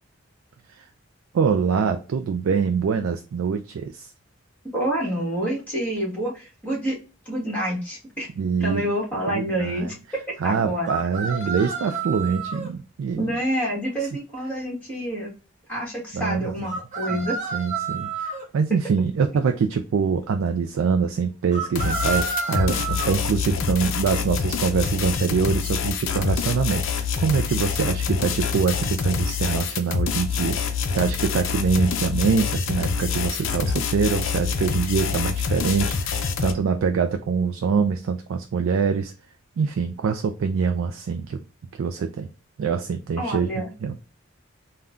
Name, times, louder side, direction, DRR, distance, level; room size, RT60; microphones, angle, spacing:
voice 1, 1.3-4.1 8.4-8.9 9.3-9.8 10.4-13.2 16.1-16.5 17.1-17.3 17.5-39.1 39.6-41.4 41.8-42.3 42.6-44.0, right 5 dB, 70° right, 0.3 m, -24 dB
voice 2, 4.7-7.0 7.2-8.3 8.6-9.9 10.4-10.9 13.2-15.3 15.7-17.4 43.2-43.7, right 1 dB, 5° left, 1.4 m, -27 dB
sound 1, 10.8-12.7 16.6-18.4 21.5-23.2, right 4 dB, 35° right, 0.7 m, -30 dB
sound 2, 21.8-36.5, left 6 dB, 65° left, 0.4 m, -26 dB
3.6 x 2.2 x 2.4 m
head